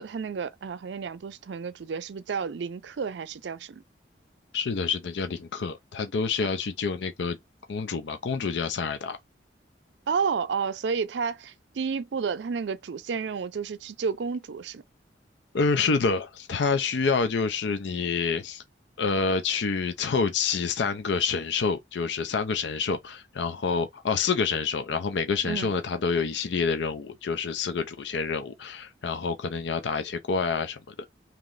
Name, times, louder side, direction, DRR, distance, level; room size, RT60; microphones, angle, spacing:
voice 1, 0.0-3.8 10.1-14.8 25.4-25.7, right 5 dB, 75° right, 0.4 m, -31 dB
voice 2, 4.5-7.4 7.7-9.2 15.5-18.6 19.0-31.1, left 5 dB, 75° left, 0.5 m, -27 dB
3.1 x 2.9 x 3.7 m
head